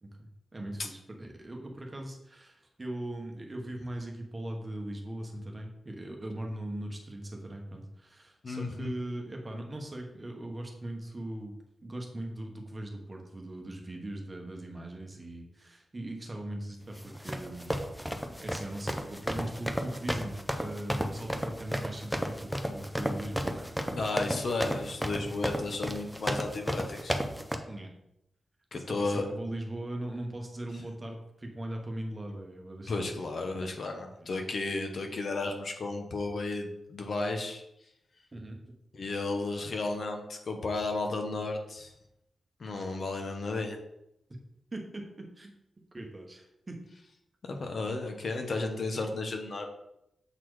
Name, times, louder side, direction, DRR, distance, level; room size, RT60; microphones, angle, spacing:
voice 1, 0.0-11.5 11.8-17.7 18.4-24.0 27.7-27.9 28.7-33.1 34.2-34.3 38.3-38.6 44.7-45.6 45.9-46.8, right 1 dB, 20° right, 2 dB, 1.0 m, -40 dB
voice 2, 8.4-8.9 24.0-27.2 28.7-29.3 32.9-37.6 38.9-41.9 42.6-43.8 47.4-49.7, left 3 dB, 45° left, 4 dB, 1.0 m, -33 dB
sound 1, 17.0-27.6, equal, ahead, 0.5 m, -33 dB
7.6 x 4.2 x 4.7 m, 0.82 s
wide cardioid pair, 175°, 0 cm